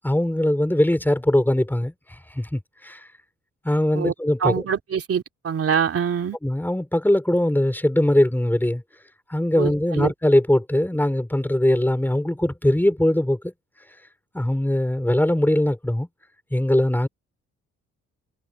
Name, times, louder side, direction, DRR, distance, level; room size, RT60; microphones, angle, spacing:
voice 1, 0.0-1.9 2.3-3.0 3.6-4.6 6.4-8.8 9.3-13.5 14.3-16.1 16.5-17.1, left 1 dB, 5° left, 4.3 m, -21 dB
voice 2, 4.4-6.4 9.6-10.1, right 7 dB, 50° right, 3.1 m, -24 dB
cardioid pair, 90°, 30 cm